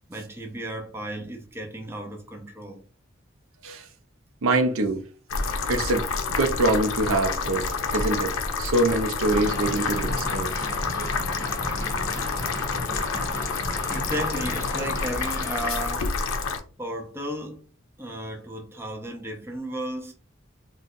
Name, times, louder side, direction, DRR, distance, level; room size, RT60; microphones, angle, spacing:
voice 1, 0.0-2.8 13.0-16.3 16.8-17.6 18.0-20.1, right 1 dB, 10° right, 0.5 m, -34 dB
voice 2, 4.4-5.0 5.7-7.7 7.9-8.3 8.6-10.5 11.0-11.1, right 2 dB, 85° right, 0.5 m, -24 dB
sound 1, 5.3-16.6, left 4 dB, 85° left, 0.5 m, -28 dB
sound 2, 9.3-15.8, left 1 dB, 15° left, 0.8 m, -36 dB
3.8 x 2.3 x 2.6 m
head